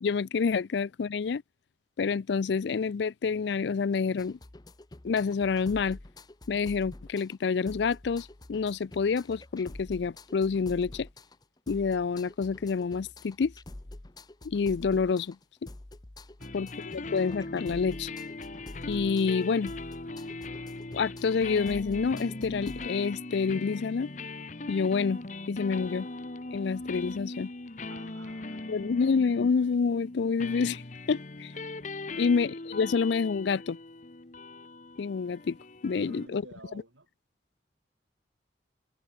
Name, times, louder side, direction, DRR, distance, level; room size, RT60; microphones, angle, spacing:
voice 1, 0.0-1.4 2.0-4.4 5.0-6.0 6.5-11.1 11.7-13.5 14.4-15.4 16.5-18.1 18.9-19.7 20.9-24.1 24.7-25.2 25.5-26.1 26.5-27.5 28.7-30.8 31.1-31.5 32.2-33.8 35.0-35.6 35.8-36.4, left 5 dB, 65° left, 0.4 m, -28 dB
sound 1, 4.2-22.9, left 1 dB, 20° left, 0.7 m, -47 dB
sound 2, 16.4-36.3, left 2 dB, 40° left, 1.1 m, -40 dB
voice 2, 16.4-16.7 27.9-29.1 32.1-32.4 36.0-37.1, right 2 dB, 85° right, 6.3 m, -52 dB
head